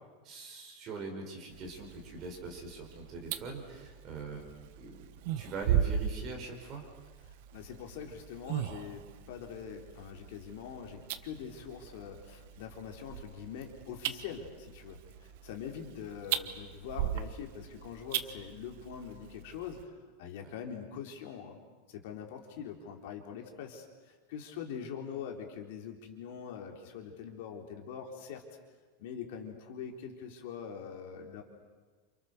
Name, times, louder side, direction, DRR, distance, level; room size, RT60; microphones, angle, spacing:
voice 1, 0.2-4.4 4.7-5.0 5.4-6.8, right 3 dB, 25° right, 2 dB, 5.0 m, -42 dB
sound 1, 1.5-19.8, right 10 dB, 50° right, 1.2 m, -39 dB
voice 2, 7.5-21.6 21.9-28.4 29.0-31.4, left 7 dB, 55° left, 3 dB, 3.8 m, -43 dB
29.5 x 28.5 x 6.8 m, 1.3 s
supercardioid pair, 180°, 0 cm